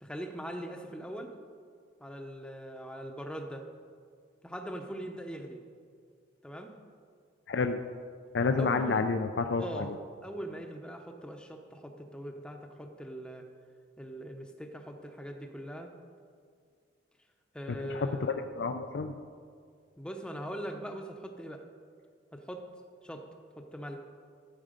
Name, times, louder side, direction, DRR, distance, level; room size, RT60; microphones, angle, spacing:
voice 1, 0.0-1.3 2.0-3.6 4.4-5.6 6.4-6.7 8.6-9.1 9.6-9.9 10.2-13.4 14.0-15.9 17.5-18.4 20.0-21.6 22.3-22.7 23.0-23.3 23.6-24.0, equal, 5° left, 4 dB, 0.8 m, -41 dB
voice 2, 7.5-7.8 8.3-9.9 17.7-19.2, left 4 dB, 65° left, 7 dB, 0.4 m, -30 dB
12.5 x 7.5 x 5.1 m, 2.1 s
head